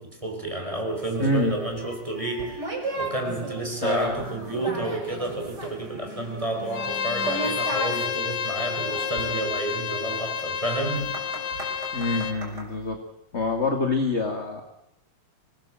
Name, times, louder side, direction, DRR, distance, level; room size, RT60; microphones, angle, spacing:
voice 1, 0.0-11.1, right 2 dB, 10° right, 2 dB, 4.6 m, -30 dB
sound 1, 1.0-12.7, right 2 dB, 30° right, 6.9 m, -36 dB
voice 2, 1.2-1.6 3.8-4.2 11.9-13.0 13.3-14.6, left 2 dB, 25° left, 5 dB, 1.8 m, -26 dB
Bowed string instrument, 6.7-12.4, left 7 dB, 75° left, 1.0 m, -30 dB
24.5 x 20.5 x 7.6 m, 0.82 s
omnidirectional pair, 3.9 m